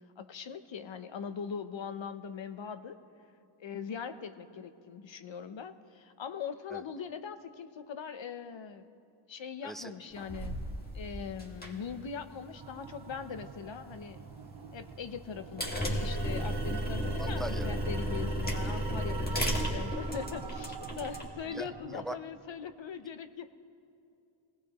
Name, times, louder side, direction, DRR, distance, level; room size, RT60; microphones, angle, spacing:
voice 1, 0.2-3.0 3.6-8.9 9.3-10.6 10.9-14.2 14.7-23.5, left 6 dB, 65° left, 10 dB, 0.8 m, -41 dB
sound 1, 10.1-21.3, right 1 dB, 20° left, 1.9 m, -35 dB
sound 2, 12.5-22.1, right 6 dB, 50° right, 0.8 m, -47 dB
voice 2, 17.2-17.7 21.5-22.2, right 1 dB, ahead, 9 dB, 0.4 m, -40 dB
24.0 x 18.0 x 3.0 m, 2.7 s
wide cardioid pair, 110°, 49 cm